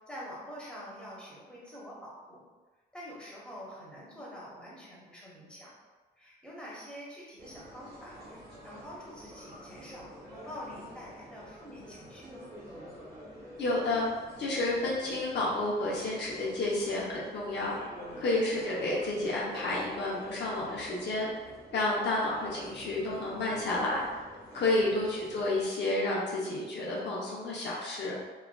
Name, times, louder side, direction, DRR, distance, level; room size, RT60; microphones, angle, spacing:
voice 1, 0.1-2.4 2.9-5.7 6.2-8.2 8.6-12.5 18.1-18.4 24.8-25.0, equal, 5° left, -6 dB, 1.0 m, -46 dB
sound 1, 7.4-25.7, equal, 60° right, 1.5 m, -48 dB
voice 2, 13.6-14.1 14.4-17.8 18.2-21.3 21.7-24.0 24.5-28.1, left 2 dB, 70° left, -5 dB, 0.7 m, -30 dB
3.1 x 2.4 x 2.2 m, 1.3 s
cardioid pair, 75°, 18 cm